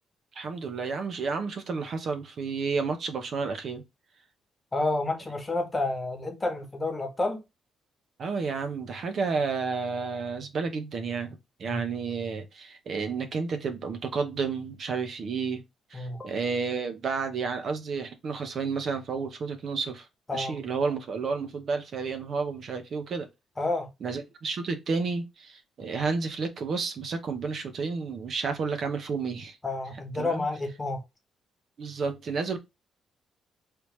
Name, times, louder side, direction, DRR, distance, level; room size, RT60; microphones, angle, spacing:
voice 1, 0.4-3.8 8.2-15.6 15.9-20.1 20.3-23.3 24.0-29.6 30.2-30.5 31.8-32.6, right 5 dB, 55° right, 0.8 m, -31 dB
voice 2, 4.7-7.4 11.7-11.8 15.9-16.3 20.3-20.6 23.6-23.9 29.6-31.0, left 2 dB, 20° left, 1.1 m, -30 dB
3.4 x 3.0 x 3.1 m
cardioid pair, 90°, 0 cm